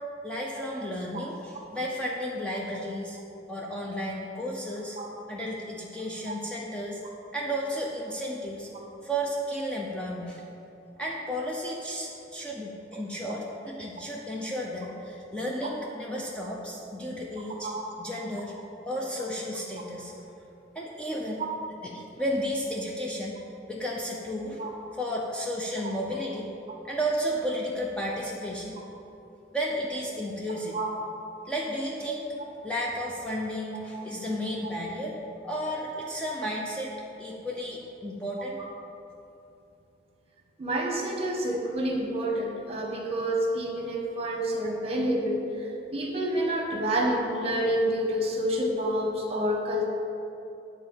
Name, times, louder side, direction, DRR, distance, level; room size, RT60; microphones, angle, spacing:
voice 1, 0.2-3.2 3.5-5.0 5.3-7.0 7.3-8.7 9.0-10.4 11.0-17.7 18.0-18.5 18.9-20.1 20.7-21.4 21.8-23.4 23.7-24.6 24.9-26.5 26.8-28.8 29.5-30.8 31.5-32.3 32.6-35.1 35.4-38.6, equal, 5° left, -3 dB, 0.7 m, -33 dB
voice 2, 40.6-49.9, right 1 dB, 35° right, 0 dB, 1.4 m, -28 dB
10.0 x 4.1 x 7.2 m, 2.8 s
head